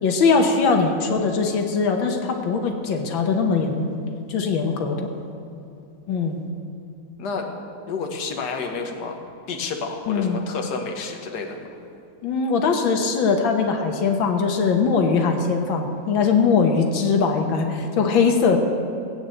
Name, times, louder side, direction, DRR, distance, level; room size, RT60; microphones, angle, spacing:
voice 1, 0.0-3.9 4.3-5.1 6.1-6.4 10.1-10.4 12.2-18.6, left 5 dB, 90° left, 3 dB, 2.0 m, -21 dB
voice 2, 4.7-5.2 7.2-7.5 7.9-9.2 9.5-11.7, left 4 dB, 60° left, 2 dB, 1.9 m, -30 dB
17.5 x 9.1 x 7.8 m, 2.7 s
omnidirectional pair, 2.1 m